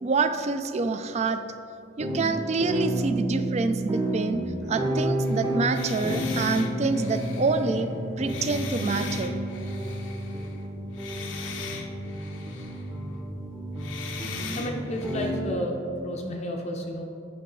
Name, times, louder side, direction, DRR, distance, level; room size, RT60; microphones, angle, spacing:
voice 1, 0.0-1.4 2.0-4.4 4.7-7.9 8.2-9.3, right 4 dB, 35° right, 9 dB, 0.4 m, -27 dB
sound 1, 2.0-15.5, right 1 dB, 20° right, 0.8 m, -31 dB
Bowed string instrument, 4.6-9.3, equal, 70° right, 0.8 m, -37 dB
sound 2, 5.2-10.7 10.9-13.0 13.8-15.3, left 5 dB, 80° left, 0.7 m, -40 dB
voice 2, 14.5-17.0, equal, 35° left, 1 dB, 0.5 m, -32 dB
9.4 x 5.7 x 3.9 m, 2.7 s
head